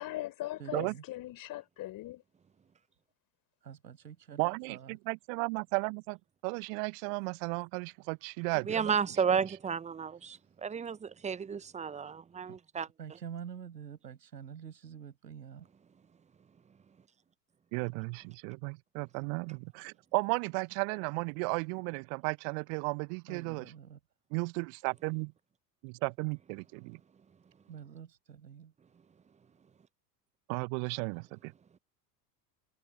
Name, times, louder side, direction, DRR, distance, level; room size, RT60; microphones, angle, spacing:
voice 1, 0.0-2.2, left 15 dB, 40° left, 4.2 m, -40 dB
voice 2, 0.6-1.0 3.6-5.0 10.3-10.4 12.4-12.6 13.0-15.7 23.3-24.0 27.7-28.7, right 8 dB, 75° right, 6.5 m, -47 dB
voice 3, 4.4-6.2 6.4-8.9 17.7-23.7 24.3-25.3 25.8-27.0 30.5-31.5, right 39 dB, 45° right, 1.1 m, -34 dB
voice 4, 8.7-12.9, right 6 dB, 15° right, 0.9 m, -32 dB
figure-of-eight pair, 80°, 49 cm